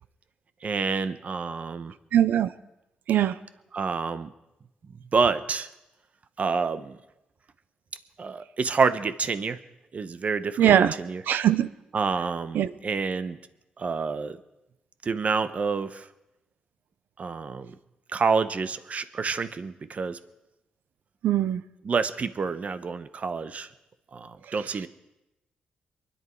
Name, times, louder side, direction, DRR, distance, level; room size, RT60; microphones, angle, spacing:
voice 1, 0.6-1.9 3.7-4.3 5.1-5.7 6.4-7.0 8.2-9.6 9.9-11.2 11.9-13.4 13.8-14.4 15.0-16.0 17.2-17.7 18.1-20.2 21.8-23.7 24.1-24.9, right 5 dB, 50° right, 0.9 m, -28 dB
voice 2, 2.1-2.5 3.1-3.3 10.6-10.9 11.3-11.7 12.5-12.7 21.2-21.6, right 10 dB, 80° right, 0.6 m, -21 dB
23.5 x 10.5 x 4.6 m
cardioid pair, 70°, 3 cm